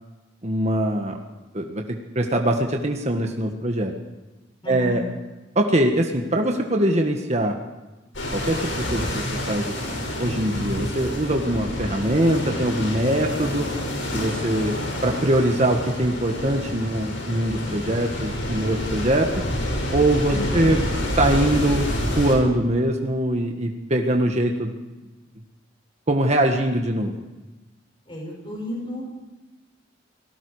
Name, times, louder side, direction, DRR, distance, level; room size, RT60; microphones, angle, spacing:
voice 1, 0.4-1.2 1.5-3.9 4.7-5.0 5.5-7.5 8.3-9.9 10.2-13.7 14.1-14.8 15.0-19.4 19.9-20.8 21.2-24.7 26.1-27.1, right 1 dB, 35° right, 3 dB, 1.6 m, -22 dB
voice 2, 4.6-5.1 20.3-20.6 28.1-29.1, equal, 30° left, -1 dB, 7.0 m, -33 dB
sound 1, 8.1-22.4, left 1 dB, 85° left, 6.8 m, -28 dB
29.0 x 19.0 x 4.9 m, 1.1 s
head